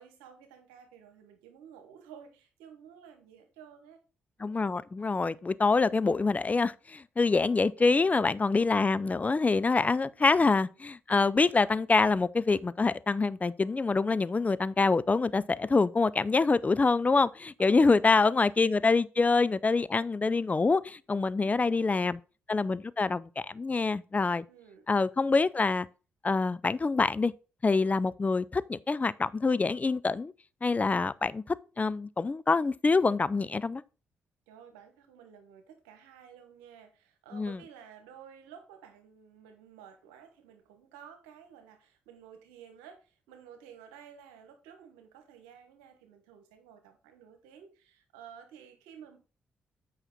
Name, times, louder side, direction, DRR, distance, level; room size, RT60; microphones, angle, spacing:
voice 1, 0.0-4.0 7.7-8.0 10.0-10.3 17.6-18.5 21.4-22.1 24.5-24.9 34.5-49.2, right 8 dB, 85° right, 1.3 m, -53 dB
voice 2, 4.4-22.2 22.5-24.4 24.9-25.9 26.2-27.3 27.6-30.3 30.6-33.8 37.3-37.6, left 4 dB, 30° left, 0.5 m, -26 dB
8.2 x 5.8 x 3.9 m
hypercardioid pair, 45°, 5 cm